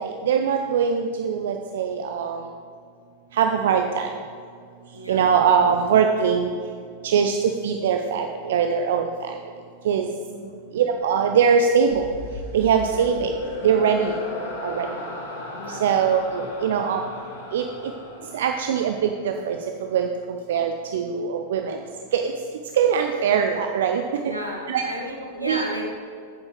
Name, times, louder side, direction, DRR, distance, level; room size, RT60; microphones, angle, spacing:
voice 1, 0.0-2.4 3.4-4.1 5.1-6.5 7.0-9.1 9.9-10.1 10.7-12.0 12.5-13.3 13.6-14.1 14.6-14.9 15.8-17.0 17.5-17.6 18.3-19.6 19.9-20.1 20.5-21.8 22.1-22.2 22.8-24.0 24.7-24.8 25.4-25.6, right 7 dB, 60° right, 5 dB, 0.5 m, -21 dB
voice 2, 4.9-5.3 10.3-10.7 12.8-13.1 15.5-16.2 24.2-26.0, equal, 90° right, -1 dB, 1.5 m, -34 dB
sound 1, 11.9-19.3, left 2 dB, 60° left, 1.7 m, -36 dB
9.2 x 7.4 x 4.5 m, 2.2 s
figure-of-eight pair, 90°, 0 cm